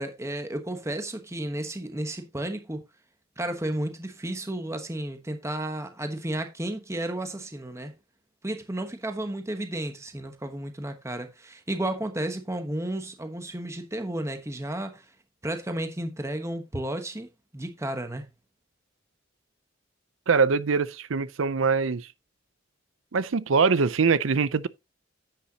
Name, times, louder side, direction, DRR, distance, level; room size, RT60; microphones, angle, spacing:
voice 1, 0.0-2.8 3.4-7.9 8.4-15.0 15.4-18.3, right 1 dB, 15° right, 1.1 m, -32 dB
voice 2, 20.3-22.1 23.1-24.7, right 5 dB, 80° right, 0.6 m, -23 dB
10.0 x 8.7 x 2.8 m
head